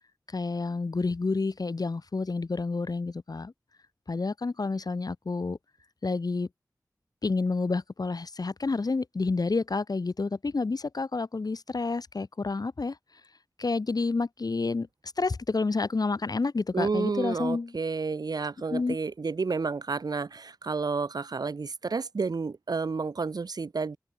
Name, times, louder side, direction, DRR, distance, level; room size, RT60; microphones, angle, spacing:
voice 1, 0.3-3.5 4.1-5.6 6.0-6.5 7.2-13.0 13.6-14.9 15.2-17.7 18.7-19.0, left 3 dB, 75° left, 3.3 m, -29 dB
voice 2, 16.7-24.0, right 4 dB, 85° right, 0.8 m, -30 dB
open air
wide cardioid pair, 45°, 7 cm